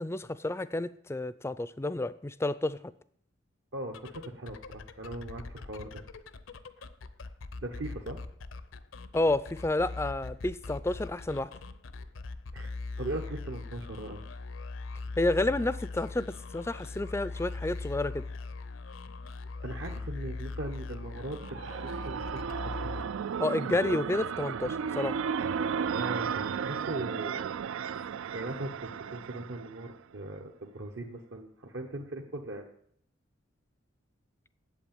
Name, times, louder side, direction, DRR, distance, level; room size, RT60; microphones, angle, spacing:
voice 1, 0.0-2.8 9.1-11.5 15.2-16.3 16.5-18.2 23.4-25.2, left 2 dB, 15° left, 16 dB, 0.4 m, -30 dB
voice 2, 3.7-6.0 6.8-6.9 7.6-8.2 12.5-14.2 19.6-23.0 25.9-27.5 27.9-28.1 28.3-32.7, right 2 dB, 65° right, 2 dB, 1.0 m, -39 dB
sound 1, 3.9-23.6, left 3 dB, 75° left, 0.7 m, -41 dB
sound 2, 21.1-30.0, right 7 dB, 80° right, 0.4 m, -34 dB
8.4 x 7.7 x 8.8 m, 0.67 s
head